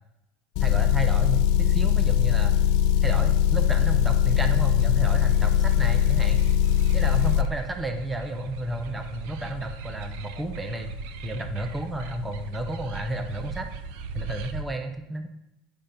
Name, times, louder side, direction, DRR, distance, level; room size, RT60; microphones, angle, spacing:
Motor vehicle (road) / Engine, 0.5-7.5, left 10 dB, 55° left, 0.5 m, -21 dB
voice 1, 0.6-2.6 3.0-6.4 6.9-10.9 11.2-13.7 14.1-15.3, right 1 dB, 10° right, 5 dB, 0.7 m, -32 dB
sound 1, 4.6-14.6, right 3 dB, 65° right, 0.8 m, -39 dB
10.0 x 5.3 x 5.7 m, 0.89 s
cardioid pair, 165°, 0 cm